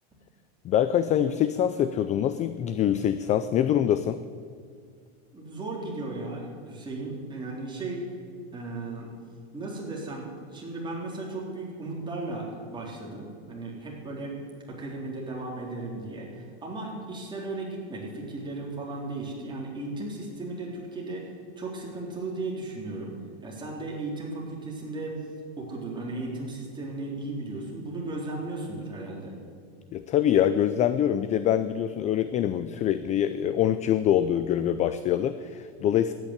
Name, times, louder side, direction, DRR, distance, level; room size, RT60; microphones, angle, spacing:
voice 1, 0.6-4.2 29.9-36.1, left 10 dB, 25° left, 12 dB, 0.3 m, -24 dB
voice 2, 5.3-8.1 8.5-9.1 9.5-14.3 14.7-21.3 21.6-25.2 25.6-29.3, right 2 dB, 15° right, -3 dB, 3.9 m, -36 dB
13.5 x 9.4 x 9.9 m, 2.1 s
supercardioid pair, 145°, 33 cm